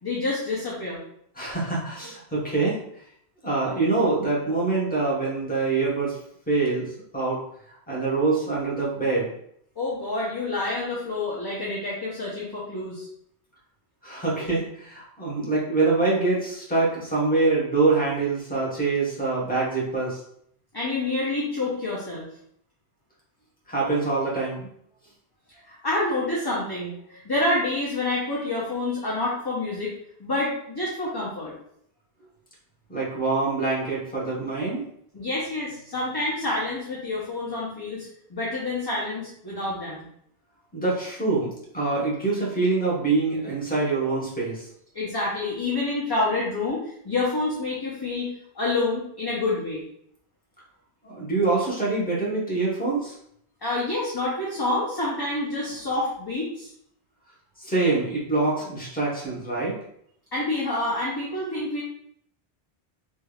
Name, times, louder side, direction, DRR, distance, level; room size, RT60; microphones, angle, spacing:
voice 1, 0.0-1.0 9.8-13.1 20.7-22.3 25.7-29.9 30.2-31.5 35.1-40.1 44.9-46.8 47.0-48.3 48.5-49.8 53.6-56.7 60.3-61.8, left 2 dB, 25° left, -7 dB, 0.7 m, -28 dB
voice 2, 1.3-2.8 3.4-6.2 6.5-6.9 7.1-7.4 7.7-9.3 14.0-20.2 23.7-24.7 32.9-34.8 40.7-44.7 51.0-53.1 57.6-59.8, right 3 dB, 10° left, -6 dB, 1.0 m, -25 dB
3.3 x 3.3 x 2.3 m, 0.70 s
omnidirectional pair, 1.1 m